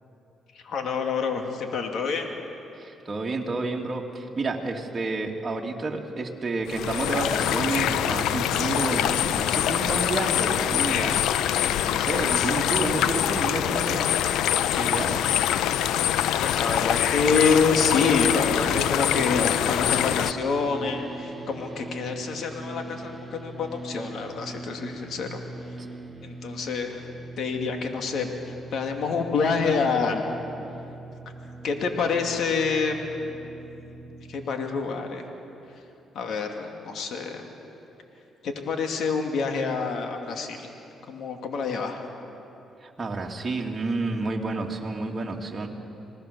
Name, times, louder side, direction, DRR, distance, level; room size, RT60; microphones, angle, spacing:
voice 1, 0.5-2.3 16.4-25.4 26.2-27.1 27.4-30.2 31.6-33.0 34.3-35.3 36.1-37.4 38.4-40.7 41.1-42.0, left 5 dB, 70° left, 4 dB, 2.6 m, -27 dB
voice 2, 2.8-11.3 11.7-14.1 14.7-15.2 25.8-25.9 42.8-45.7, right 3 dB, 30° right, -1 dB, 2.7 m, -30 dB
sound 1, 6.7-20.3, left 11 dB, 85° left, 0.6 m, -24 dB
sound 2, 19.2-34.5, right 2 dB, 15° right, 2.0 m, -41 dB
27.0 x 19.5 x 7.0 m, 2.9 s
cardioid pair, 75°, 0 cm